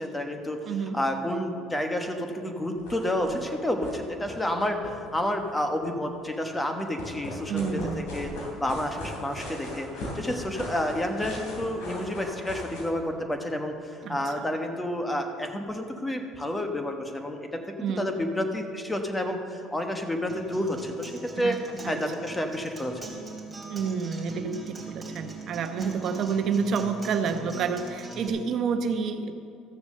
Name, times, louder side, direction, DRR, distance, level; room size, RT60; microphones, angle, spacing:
voice 1, 0.0-0.6 0.9-8.3 8.6-9.9 10.1-17.6 18.0-21.6 21.9-23.1, left 1 dB, 10° left, 5 dB, 1.2 m, -30 dB
voice 2, 0.7-1.0 7.5-8.0 14.0-14.4 17.8-18.1 21.3-21.6 21.8-22.0 23.7-29.3, right 6 dB, 55° right, 7 dB, 0.9 m, -29 dB
sound 1, 2.8-3.5 3.8-3.9 4.2-5.6 6.7-12.8, left 1 dB, 80° left, 3.6 m, -38 dB
Acoustic guitar, 20.3-28.3, right 2 dB, 10° right, 2.9 m, -41 dB
14.0 x 6.8 x 6.6 m, 2.5 s
cardioid pair, 115°, 0 cm